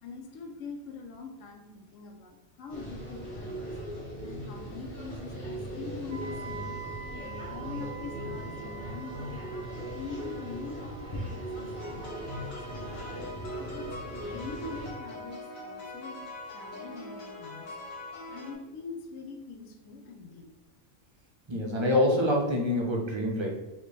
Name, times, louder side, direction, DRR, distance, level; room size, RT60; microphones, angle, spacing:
voice 1, 0.0-3.7 4.2-6.7 7.2-12.9 13.6-17.7 18.3-20.5, left 4 dB, 70° left, 4 dB, 1.0 m, -43 dB
sound 1, 2.7-14.9, equal, 25° left, 1.1 m, -39 dB
Wind instrument woodwind instrument, 6.1-14.0, right 6 dB, 75° right, 0.9 m, -46 dB
sound 2, 11.7-18.5, left 2 dB, 85° left, 1.5 m, -43 dB
voice 2, 21.5-23.5, left 1 dB, 35° right, -1 dB, 0.4 m, -26 dB
4.3 x 3.0 x 3.3 m, 1.1 s
omnidirectional pair, 1.4 m